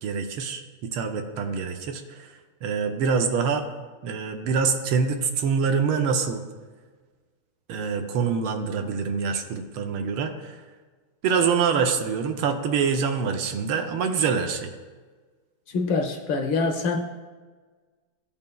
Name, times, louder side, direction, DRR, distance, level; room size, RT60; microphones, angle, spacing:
voice 1, 0.0-3.6 4.0-6.4 7.7-10.6 11.2-14.7, right 6 dB, 75° right, 6 dB, 1.4 m, -25 dB
voice 2, 15.7-17.0, left 4 dB, 70° left, 2 dB, 1.2 m, -25 dB
15.0 x 5.4 x 2.2 m, 1.4 s
omnidirectional pair, 2.4 m